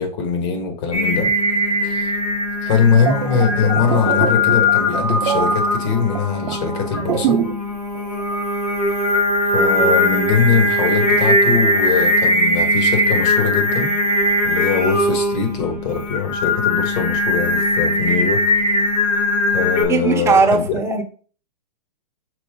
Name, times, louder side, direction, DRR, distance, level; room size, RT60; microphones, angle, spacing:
voice 1, 0.0-1.3 1.8-2.1 2.6-7.4 9.5-13.9 14.4-18.4 19.1-19.2 19.5-20.8, left 6 dB, 45° left, 2.0 m, -21 dB
Singing, 0.9-19.8, left 1 dB, 65° left, 3.2 m, -19 dB
sound 1, 2.9-7.7 7.9-8.2, right 9 dB, 65° right, 1.0 m, -24 dB
voice 2, 19.9-21.0, right 4 dB, 15° right, 0.9 m, -17 dB
6.0 x 4.4 x 3.9 m
hypercardioid pair, 130°, 21 cm